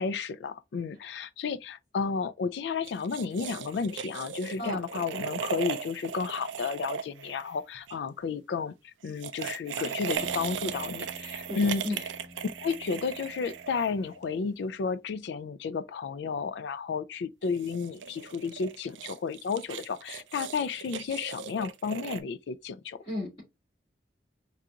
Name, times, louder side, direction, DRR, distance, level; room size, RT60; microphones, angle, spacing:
voice 1, 0.0-8.7 9.0-11.8 12.6-23.0, left 5 dB, 65° left, 0.3 m, -32 dB
sound 1, 2.8-8.0 9.0-14.2 17.4-22.2, right 7 dB, 85° right, 0.4 m, -38 dB
sound 2, 10.1-14.8, left 1 dB, 5° left, 0.8 m, -49 dB
voice 2, 11.5-12.0 23.1-23.4, left 1 dB, 35° left, 2.4 m, -34 dB
4.6 x 2.5 x 2.7 m
head